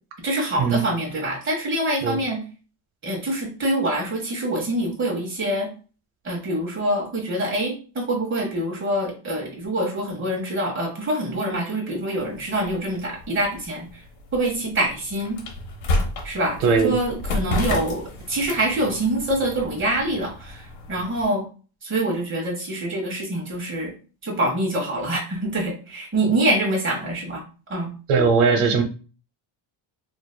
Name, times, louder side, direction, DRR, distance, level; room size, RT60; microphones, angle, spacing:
voice 1, 0.2-2.4 3.0-5.7 6.2-13.9 14.3-15.4 16.2-21.4 21.8-23.9 24.2-27.4 27.7-27.9, right 1 dB, 25° right, -3 dB, 1.4 m, -25 dB
sound 1, 12.2-21.3, left 1 dB, 85° left, 1.1 m, -31 dB
voice 2, 16.6-17.0 28.1-28.8, right 5 dB, 80° right, 4 dB, 1.0 m, -19 dB
4.9 x 2.7 x 2.2 m, 0.36 s
cardioid pair, 170°, 50 cm